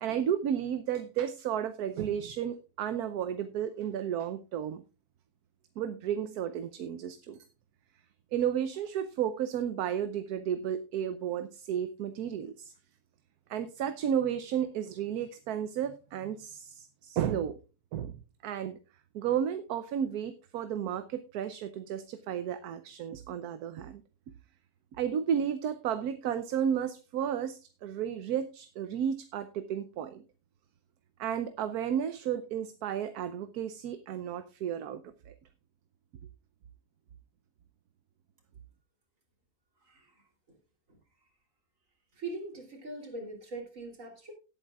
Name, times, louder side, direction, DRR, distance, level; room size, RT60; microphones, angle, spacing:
voice 1, 0.0-4.8 5.8-7.4 8.3-12.7 13.5-17.6 17.9-18.1 18.4-18.8 19.1-24.0 25.0-30.2 31.2-35.3, right 9 dB, 75° right, 11 dB, 1.2 m, -33 dB
voice 2, 39.8-40.2 42.2-44.3, right 2 dB, 55° right, 3 dB, 3.5 m, -41 dB
18.0 x 8.9 x 2.3 m, 0.31 s
omnidirectional pair, 1.7 m